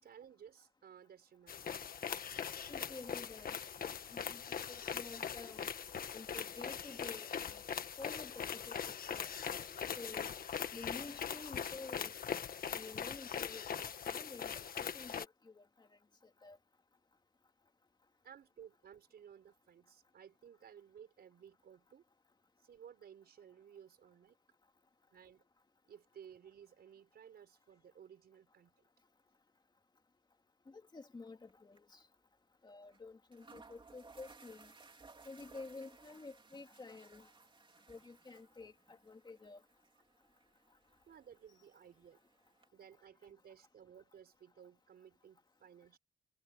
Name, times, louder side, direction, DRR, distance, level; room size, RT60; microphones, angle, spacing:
voice 1, 0.0-1.7 18.2-22.1 22.6-24.4 25.1-25.4 25.9-28.8 41.1-42.2 42.7-46.0, right 8 dB, 75° right, 5.3 m, -57 dB
sound 1, 1.5-15.2, left 7 dB, 60° left, 1.5 m, -41 dB
voice 2, 2.7-3.5 4.1-4.4 4.7-5.7 6.1-7.6 8.0-8.8 9.1-9.3 10.0-10.4 10.7-12.2 12.7-13.7 14.1-16.0 16.4-16.6 30.7-32.0 32.6-34.7 35.2-37.3 37.9-39.6, left 3 dB, 25° left, 2.6 m, -51 dB
sound 2, 31.3-31.5 31.8-31.9 32.9-33.0 33.3-42.7, right 4 dB, 30° right, 3.7 m, -61 dB
wide cardioid pair, 125°, 17 cm